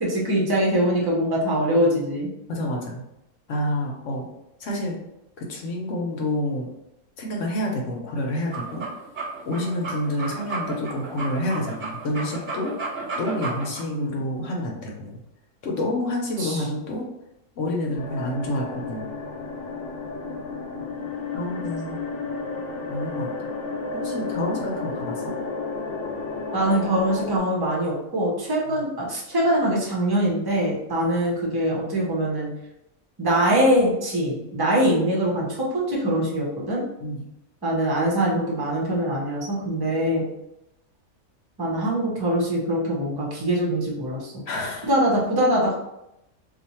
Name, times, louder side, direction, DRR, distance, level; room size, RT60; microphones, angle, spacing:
voice 1, 0.0-2.3 16.4-16.6 26.5-32.5 33.2-36.8 37.6-40.3 41.6-44.4 44.9-45.7, right 1 dB, 20° right, -3 dB, 0.6 m, -23 dB
voice 2, 2.5-3.0 3.5-4.2 4.6-5.0 5.4-6.7 7.2-8.9 9.4-12.7 13.2-15.2 15.6-17.0 17.6-19.1 21.3-22.0 22.9-23.5 23.9-25.3 28.7-28.8 37.0-37.3 44.5-44.9, left 1 dB, 65° left, 0 dB, 1.0 m, -28 dB
sound 1, 8.4-13.8, right 3 dB, 40° right, 0.9 m, -33 dB
sound 2, 17.9-27.4, left 4 dB, 80° left, 1.2 m, -32 dB
2.6 x 2.4 x 4.1 m, 0.86 s
omnidirectional pair, 1.5 m